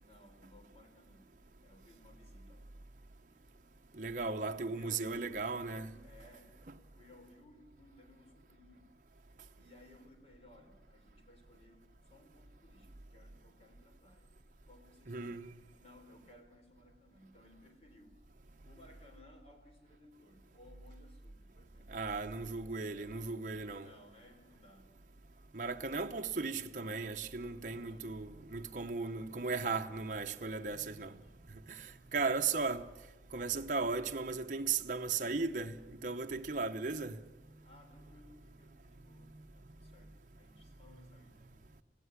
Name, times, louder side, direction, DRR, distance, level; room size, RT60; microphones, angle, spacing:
voice 1, 0.0-1.3 1.6-2.7 4.0-6.5 7.0-8.9 9.6-14.3 14.7-15.5 15.8-18.2 18.6-22.2 22.4-22.6 22.9-23.4 23.7-24.9 26.2-27.0 27.6-28.1 30.5-31.3 32.1-32.6 37.6-41.6, left 1 dB, 35° left, 3.7 m, -61 dB
voice 2, 4.0-5.9 15.1-15.5 21.9-23.9 25.5-31.1 31.7-32.8 33.3-37.2, right 4 dB, 45° right, 0.8 m, -36 dB
21.0 x 16.5 x 9.7 m
head